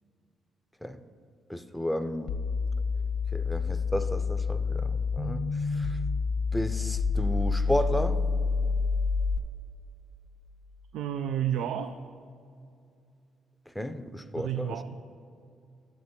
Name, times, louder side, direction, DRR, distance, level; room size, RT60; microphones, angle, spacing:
voice 1, 1.5-2.3 3.3-5.4 5.8-5.9 6.5-8.2 13.8-14.8, equal, 5° left, 9 dB, 0.5 m, -32 dB
sound 1, 2.3-9.4, left 4 dB, 80° left, 0.9 m, -28 dB
voice 2, 10.9-12.0 14.3-15.0, right 10 dB, 85° right, 10 dB, 0.3 m, -31 dB
11.0 x 8.0 x 4.3 m, 2.4 s
cardioid pair, 90°, 0 cm